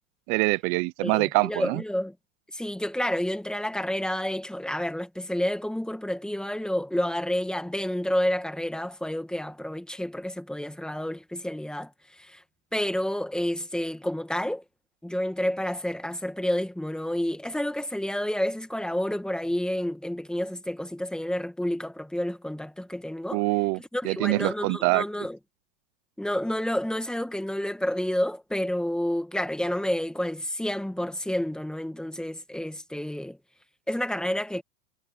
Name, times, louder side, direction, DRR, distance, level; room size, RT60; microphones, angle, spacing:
voice 1, 0.3-1.8 23.3-23.8 24.0-25.0, right 26 dB, 35° right, 0.5 m, -24 dB
voice 2, 1.0-2.1 2.5-11.9 12.2-12.4 12.7-14.6 15.0-23.4 23.8-25.4 26.2-33.4 33.9-34.6, left 1 dB, ahead, 1.9 m, -29 dB
supercardioid pair, 140°, 38 cm